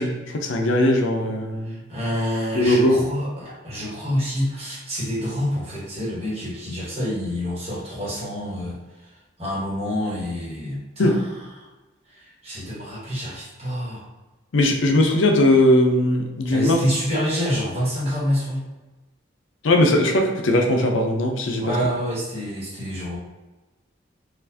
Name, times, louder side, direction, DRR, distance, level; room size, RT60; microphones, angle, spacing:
voice 1, 0.0-1.8 2.5-3.0 11.0-11.2 14.5-16.8 19.6-21.6, left 1 dB, 75° left, 2 dB, 0.5 m, -19 dB
voice 2, 1.6-8.8 9.0-9.1 9.4-11.2 11.6-11.7 12.1-14.0 16.5-18.6 21.6-23.2, equal, 30° right, -6 dB, 1.2 m, -27 dB
4.3 x 2.4 x 2.7 m, 1.1 s
head